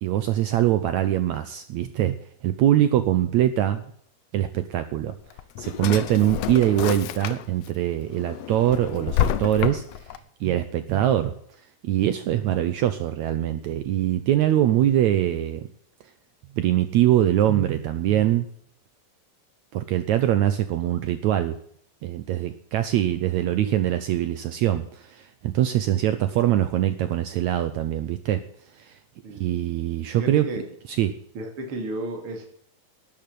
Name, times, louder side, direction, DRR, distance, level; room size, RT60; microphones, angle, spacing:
voice 1, 0.0-2.2 2.4-3.8 4.3-5.1 5.6-9.9 10.4-11.3 11.8-15.7 16.6-18.5 19.7-21.6 22.0-28.4 28.8-28.9 29.4-30.5 30.9-31.1, right 12 dB, 75° right, 11 dB, 1.8 m, -23 dB
Drawer open or close, 5.1-7.7 8.1-10.2, left 11 dB, 90° left, 1.4 m, -29 dB
voice 2, 30.1-30.7 31.3-32.5, right 1 dB, 45° right, 4 dB, 3.0 m, -33 dB
12.5 x 8.8 x 7.6 m, 0.63 s
omnidirectional pair, 4.0 m